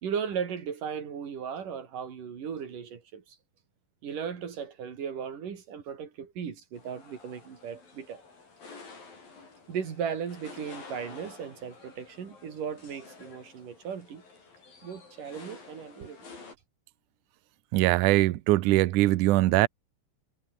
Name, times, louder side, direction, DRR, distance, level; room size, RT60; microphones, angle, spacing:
voice 1, 0.0-3.4 4.0-8.2 9.7-14.2 14.8-16.2, right 7 dB, 55° right, 4.5 m, -36 dB
sound 1, 6.7-16.5, left 4 dB, 60° left, 8.9 m, -50 dB
voice 2, 17.7-19.7, right 17 dB, 85° right, 1.8 m, -22 dB
omnidirectional pair, 4.7 m